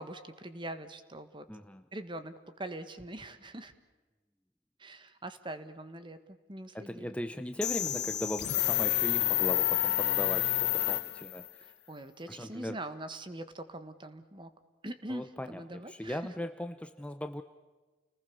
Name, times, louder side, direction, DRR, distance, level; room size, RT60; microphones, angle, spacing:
voice 1, 0.0-1.5 1.9-3.7 4.8-7.2 11.9-14.5 14.8-16.2, right 1 dB, 25° right, 11 dB, 1.6 m, -43 dB
voice 2, 1.5-1.8 6.7-11.7 12.3-12.8 15.1-17.4, equal, 5° left, 9 dB, 0.7 m, -39 dB
sound 1, 7.6-11.5, left 14 dB, 60° left, 1.1 m, -29 dB
30.0 x 20.0 x 6.9 m, 1.3 s
head